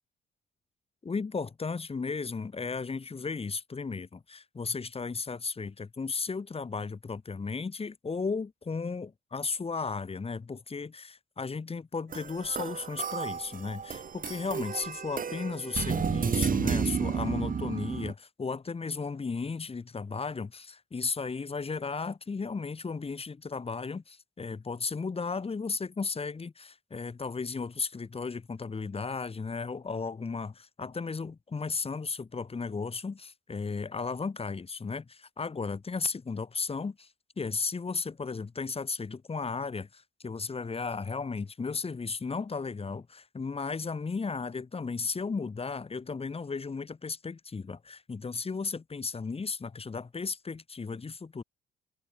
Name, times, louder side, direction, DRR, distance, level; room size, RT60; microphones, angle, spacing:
voice 1, 1.0-37.1 37.4-51.4, left 4 dB, 30° left, 2.4 m, -35 dB
sound 1, 12.1-18.1, right 6 dB, 45° right, 4.2 m, -32 dB
cardioid pair, 90°, 20 cm